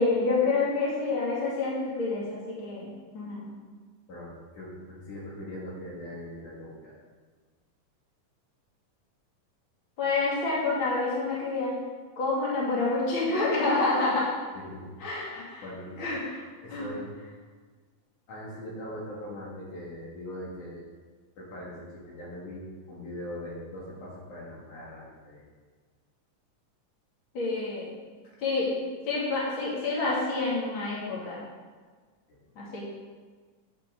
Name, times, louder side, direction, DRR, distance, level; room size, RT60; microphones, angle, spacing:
voice 1, 0.0-3.4 10.0-11.7 12.2-14.3 15.0-15.6 16.0-16.4 16.7-16.9 27.3-27.9 28.4-31.4 32.6-32.9, left 3 dB, 40° left, -6 dB, 3.2 m, -28 dB
voice 2, 4.1-6.9 14.5-14.9 15.6-15.9 16.6-17.1 18.3-20.8 21.4-25.4 28.2-28.3 32.3-32.4, left 1 dB, 70° left, -5 dB, 3.6 m, -41 dB
10.0 x 9.4 x 3.9 m, 1.5 s
omnidirectional pair, 3.7 m